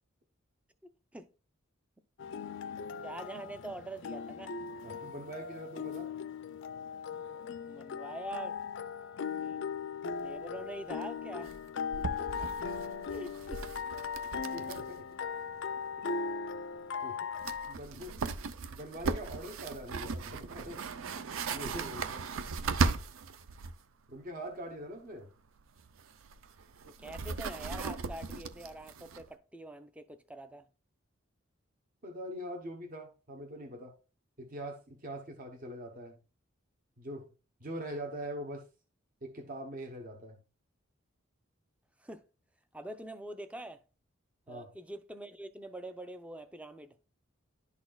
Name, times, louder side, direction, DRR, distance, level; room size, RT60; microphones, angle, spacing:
voice 1, 0.8-1.3 3.0-4.5 7.7-8.6 9.2-9.6 10.2-11.5 13.1-13.6 26.9-30.7 42.0-42.2 42.7-43.8 44.5-47.0, right 1 dB, 5° right, 0.5 m, -44 dB
sound 1, 2.2-17.7, left 6 dB, 60° left, 0.4 m, -38 dB
voice 2, 4.8-6.1 12.2-12.7 14.5-15.1 15.7-15.8 17.0-17.3 17.7-18.2 18.7-20.8 21.2-21.3 21.5-22.2 24.1-25.3 32.0-33.9 34.4-36.2 37.0-37.3 37.6-38.6 39.2-40.4 44.5-44.7, right 1 dB, 45° right, 0.9 m, -43 dB
sound 2, 10.2-10.3 10.4-10.5 10.8-11.0 11.4-15.0 15.2-15.3 17.0-17.1 17.4-23.8 25.6-29.3, right 4 dB, 70° right, 0.5 m, -37 dB
11.0 x 4.2 x 2.3 m
head